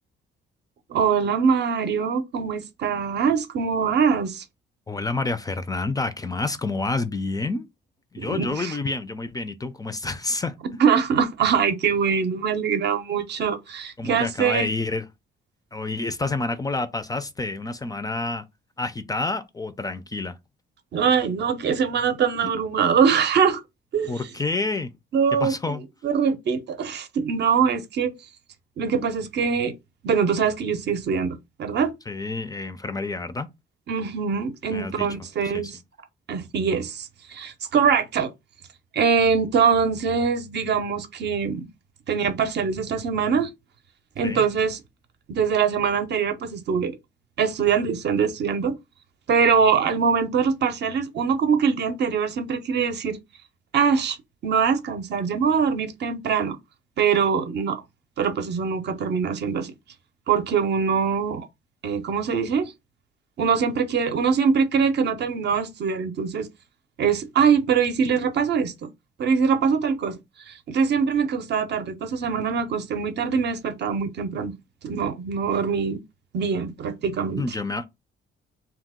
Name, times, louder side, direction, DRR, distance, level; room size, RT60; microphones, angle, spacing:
voice 1, 0.9-4.4 8.2-8.8 10.8-14.7 20.9-23.6 23.9-24.1 25.1-25.8 26.0-28.1 28.8-29.7 30.0-31.9 33.9-35.8 36.3-38.3 38.9-41.7 42.1-43.5 44.2-44.8 45.3-47.0 47.4-48.8 49.3-53.2 53.7-54.2 54.4-56.6 57.0-57.8 58.2-59.7 60.3-61.5 61.8-62.7 63.4-66.5 67.0-68.9 69.2-70.2 70.5-74.5 74.8-76.0 76.3-77.4, right 6 dB, 60° right, 0.6 m, -23 dB
voice 2, 4.9-7.7 8.1-10.5 14.0-15.0 15.7-18.4 18.8-20.4 22.4-22.5 24.1-24.9 25.4-25.8 32.1-33.5 34.7-35.1 35.5-35.7 44.2-44.4 77.4-77.8, left 3 dB, 20° left, 0.4 m, -28 dB
2.9 x 2.0 x 3.5 m
cardioid pair, 90°, 20 cm